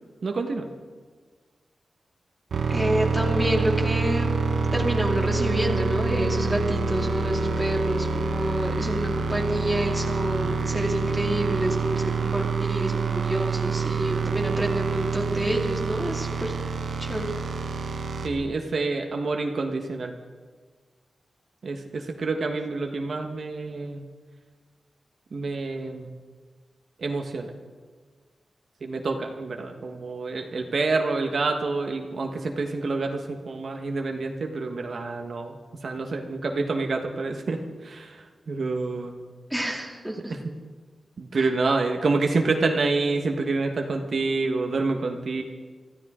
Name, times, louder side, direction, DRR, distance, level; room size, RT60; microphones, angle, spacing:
voice 1, 0.2-0.7 10.4-10.6 18.2-20.1 21.6-24.0 25.3-26.1 27.0-27.5 28.8-33.2 33.5-35.6 35.8-37.6 37.8-38.1 38.5-39.2 41.2-45.4, right 3 dB, 55° right, 3 dB, 1.3 m, -27 dB
sound 1, 2.5-18.3, right 4 dB, 70° right, 1.3 m, -27 dB
voice 2, 2.7-4.3 4.7-12.0 12.3-16.5 17.0-17.3 39.5-40.3 41.4-41.5, right 1 dB, 5° right, 0 dB, 2.3 m, -28 dB
25.0 x 14.5 x 3.7 m, 1.5 s
wide cardioid pair, 135°, 0 cm